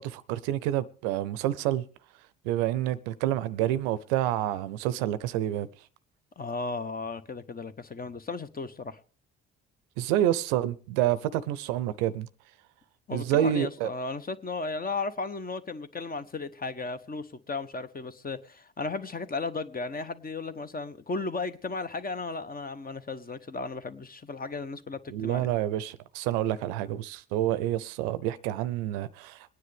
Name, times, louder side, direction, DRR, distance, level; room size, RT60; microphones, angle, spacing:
voice 1, 0.0-1.8 2.4-5.7 10.0-12.3 13.1-13.9 25.1-29.5, right 12 dB, 75° right, 0.6 m, -28 dB
voice 2, 6.4-9.0 13.1-25.5, left 3 dB, 25° left, 1.0 m, -35 dB
22.5 x 9.7 x 3.4 m
hypercardioid pair, 50°, 33 cm